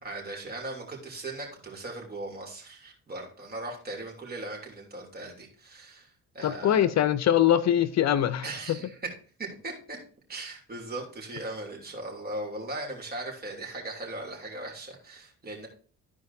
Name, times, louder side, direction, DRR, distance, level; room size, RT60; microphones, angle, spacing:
voice 1, 0.0-6.8 8.4-9.0 9.4-10.0 10.3-15.7, right 2 dB, 30° right, 3.1 m, -38 dB
voice 2, 6.4-8.4, left 11 dB, 60° left, 0.6 m, -22 dB
14.0 x 4.7 x 2.7 m
cardioid pair, 90°, 30 cm